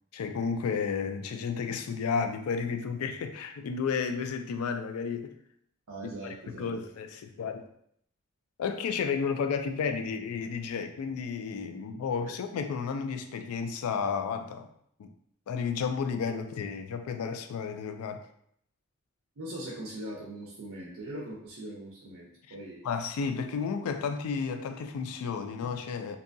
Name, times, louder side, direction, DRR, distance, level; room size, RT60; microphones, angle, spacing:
voice 1, 0.1-5.3 6.0-7.6 8.6-14.7 15.0-15.1 15.5-18.2 22.8-26.2, left 5 dB, 80° left, 0.3 m, -32 dB
voice 2, 5.9-6.7 12.2-12.3 19.4-22.8, right 1 dB, 70° right, 0.5 m, -41 dB
2.7 x 2.2 x 2.5 m
head